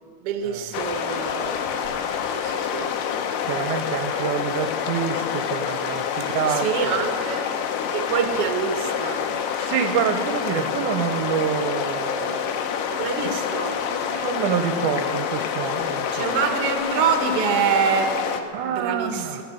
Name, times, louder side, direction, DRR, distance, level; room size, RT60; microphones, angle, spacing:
voice 1, 0.2-1.9 2.3-2.9 6.5-7.4 7.9-9.2 10.5-10.9 12.9-13.8 16.1-19.4, right 7 dB, 60° right, 6 dB, 1.6 m, -26 dB
sound 1, 0.7-18.4, left 8 dB, 80° left, 2.3 m, -27 dB
voice 2, 3.4-7.0 9.6-13.0 13.7-16.3 18.5-19.4, right 7 dB, 80° right, 7 dB, 2.1 m, -27 dB
15.0 x 7.8 x 7.5 m, 2.3 s
omnidirectional pair, 3.7 m